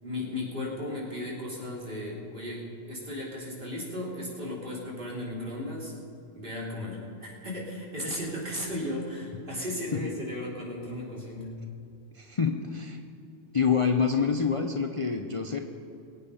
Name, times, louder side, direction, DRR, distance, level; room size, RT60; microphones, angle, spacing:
voice 1, 0.0-2.6 2.9-5.9 6.3-11.5, left 1 dB, 45° right, -4 dB, 3.7 m, -35 dB
voice 2, 12.1-13.0 13.5-15.6, left 6 dB, 35° left, 5 dB, 0.6 m, -26 dB
22.5 x 8.8 x 5.5 m, 2.7 s
omnidirectional pair, 1.3 m